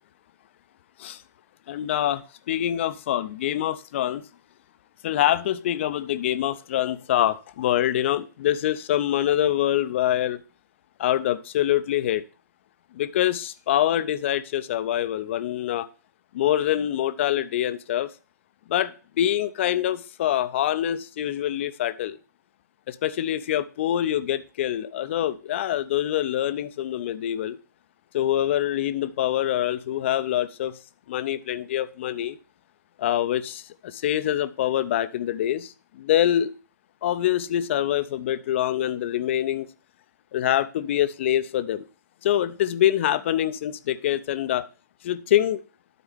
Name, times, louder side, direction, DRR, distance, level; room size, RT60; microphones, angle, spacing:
voice 1, 1.7-4.3 5.0-10.4 11.0-12.2 12.9-15.9 16.3-18.1 18.7-22.2 22.9-27.6 28.1-30.7 31.1-32.4 33.0-36.5 37.0-39.7 40.3-41.8 42.2-44.7 45.0-45.6, left 12 dB, 40° left, 14 dB, 0.5 m, -25 dB
12.5 x 4.3 x 3.5 m, 0.36 s
figure-of-eight pair, 120°, 10 cm